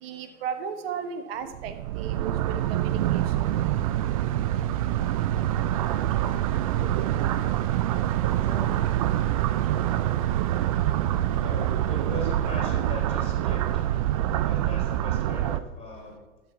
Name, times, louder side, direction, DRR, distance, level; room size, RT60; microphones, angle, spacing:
voice 1, 0.0-3.2, right 7 dB, 45° right, 9 dB, 1.4 m, -35 dB
sound 1, 1.5-15.6, right 12 dB, 30° right, 0.4 m, -25 dB
voice 2, 8.4-8.7 11.4-13.8 14.3-16.2, left 2 dB, 15° left, 0 dB, 3.6 m, -40 dB
13.0 x 6.5 x 6.0 m, 1.2 s
figure-of-eight pair, 115°, 40 cm